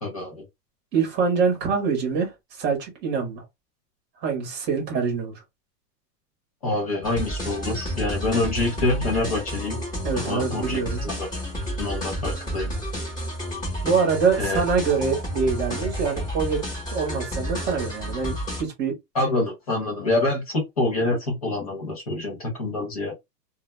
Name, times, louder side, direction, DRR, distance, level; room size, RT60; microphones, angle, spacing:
voice 1, 0.0-0.4 6.6-9.8 10.1-11.3 11.8-12.7 14.4-14.7 19.1-23.1, left 2 dB, 25° left, 0.3 m, -26 dB
voice 2, 0.9-3.4 4.2-5.3 10.0-11.0 13.8-18.9, right 5 dB, 20° right, 0.8 m, -25 dB
sound 1, 7.0-18.6, equal, 10° left, 0.8 m, -31 dB
2.1 x 2.1 x 3.0 m
supercardioid pair, 165°, 49 cm